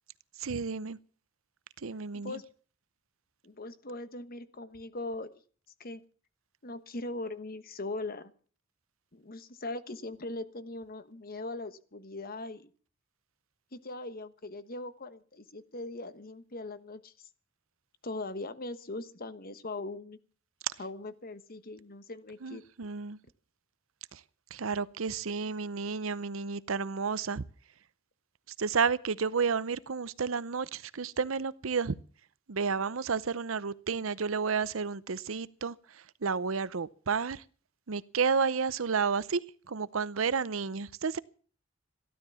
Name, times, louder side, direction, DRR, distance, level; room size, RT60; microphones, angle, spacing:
voice 1, 0.4-1.0 1.8-2.4 20.6-20.7 22.4-23.2 24.1-24.2 24.5-27.4 28.6-32.0 32.5-37.4 37.9-41.2, right 5 dB, 75° right, 0.7 m, -31 dB
voice 2, 3.4-5.3 5.8-6.0 6.6-8.3 9.1-12.7 13.7-17.3 18.0-20.2 20.8-22.6, left 2 dB, 45° left, 1.2 m, -40 dB
14.5 x 13.0 x 7.0 m
head